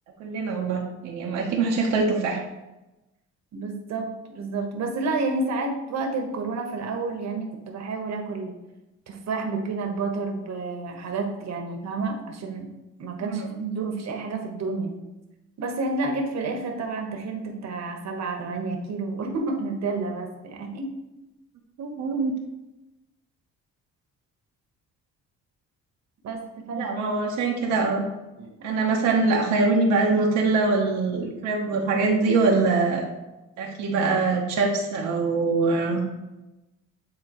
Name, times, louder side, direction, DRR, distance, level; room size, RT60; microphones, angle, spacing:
voice 1, 0.2-2.4 13.2-13.5 21.8-22.3 26.8-28.0 28.6-33.1 33.6-36.0, right 3 dB, 85° right, -2 dB, 1.0 m, -23 dB
voice 2, 3.5-4.1 4.3-8.5 9.1-12.7 13.0-15.0 15.6-20.9 26.2-26.4 26.7-26.9 28.4-28.5, right 3 dB, 60° right, 3 dB, 1.2 m, -30 dB
8.9 x 3.7 x 3.0 m, 1.0 s
cardioid pair, 90°, 30 cm